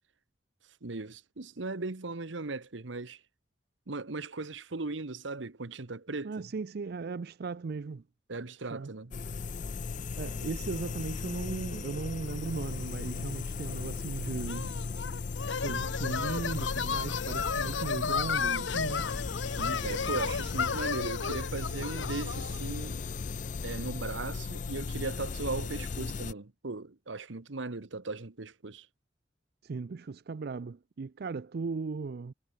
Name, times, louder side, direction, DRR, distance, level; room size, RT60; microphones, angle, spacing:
voice 1, 0.8-3.2 3.9-6.3 8.3-9.1 19.6-23.0 23.6-28.9, right 3 dB, 80° right, 1.2 m, -38 dB
voice 2, 6.2-8.0 8.6-8.9 10.2-14.8 15.6-19.1 29.6-32.3, right 4 dB, 55° right, 0.4 m, -37 dB
sound 1, 9.1-26.3, left 4 dB, 40° left, 0.4 m, -36 dB
sound 2, 14.5-22.6, left 6 dB, 80° left, 1.1 m, -33 dB
head